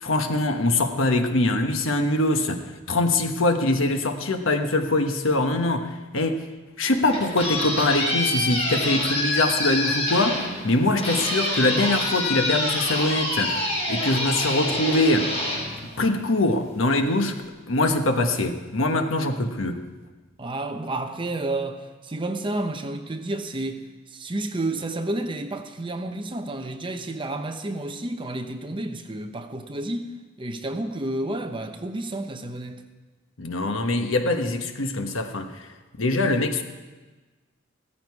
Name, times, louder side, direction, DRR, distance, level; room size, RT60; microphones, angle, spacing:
voice 1, 0.0-2.6 2.9-6.4 6.8-15.3 16.0-17.4 17.7-19.8 33.4-35.5 36.0-36.6, left 2 dB, 75° left, 6 dB, 1.2 m, -23 dB
sound 1, 6.8-16.5, left 1 dB, 30° left, 3.8 m, -27 dB
voice 2, 20.4-23.8 24.1-30.1 30.4-32.8, right 2 dB, 25° right, 6 dB, 0.9 m, -30 dB
16.0 x 14.0 x 4.8 m, 1.3 s
head